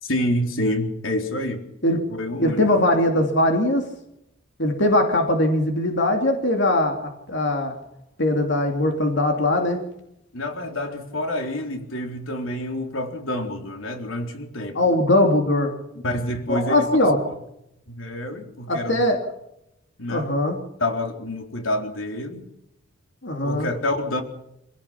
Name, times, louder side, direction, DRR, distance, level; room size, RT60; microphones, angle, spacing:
voice 1, 0.0-1.6 2.1-2.7 10.3-14.8 16.0-17.4 17.9-19.0 20.0-20.3 20.8-22.5 23.4-24.2, left 1 dB, 90° left, 3 dB, 4.0 m, -28 dB
voice 2, 2.4-3.9 4.6-7.8 8.2-9.8 14.7-15.7 16.5-17.2 18.7-19.3 20.1-20.6 23.2-23.7, left 1 dB, 60° left, 3 dB, 3.1 m, -21 dB
26.5 x 17.5 x 6.0 m, 0.82 s
head